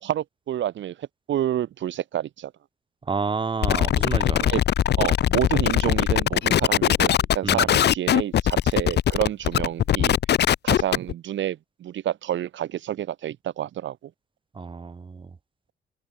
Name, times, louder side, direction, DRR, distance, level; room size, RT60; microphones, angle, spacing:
voice 1, 0.0-2.5 4.5-4.6 5.0-10.2 10.6-14.1, right 11 dB, 70° right, 2.0 m, -29 dB
voice 2, 3.1-4.5 7.4-7.7 14.5-15.3, right 4 dB, 25° right, 0.9 m, -29 dB
sound 1, 3.6-11.1, left 10 dB, 60° left, 0.9 m, -21 dB
open air
cardioid pair, 90°, 20 cm